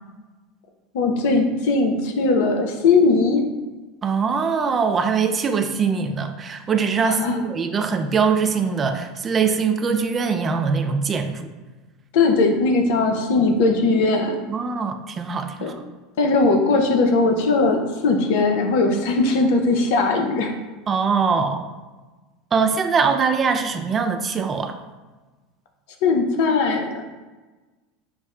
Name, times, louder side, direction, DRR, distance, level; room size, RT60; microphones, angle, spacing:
voice 1, 0.9-3.4 7.0-7.4 12.1-14.4 15.6-15.7 16.2-20.5 26.0-27.0, left 3 dB, 60° left, 4 dB, 0.5 m, -19 dB
voice 2, 4.0-11.5 14.5-15.7 18.9-19.0 20.9-21.7 22.5-24.7, right 5 dB, 30° right, 6 dB, 0.3 m, -22 dB
5.9 x 2.0 x 2.3 m, 1.2 s
figure-of-eight pair, 75°, 0 cm